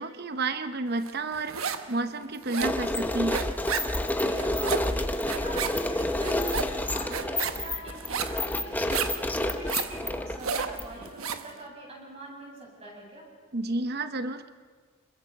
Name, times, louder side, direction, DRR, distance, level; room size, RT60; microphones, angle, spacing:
voice 1, 0.0-3.4 13.5-14.5, right 2 dB, 50° right, 10 dB, 0.9 m, -31 dB
sound 1, 1.1-1.9 2.2-11.5, right 6 dB, 85° right, 1.1 m, -33 dB
sound 2, 2.6-11.1, left 1 dB, 10° left, 0.9 m, -29 dB
voice 2, 4.1-9.0 9.4-13.3, right 1 dB, 30° right, -2 dB, 7.0 m, -44 dB
27.0 x 21.0 x 5.4 m, 1.5 s
head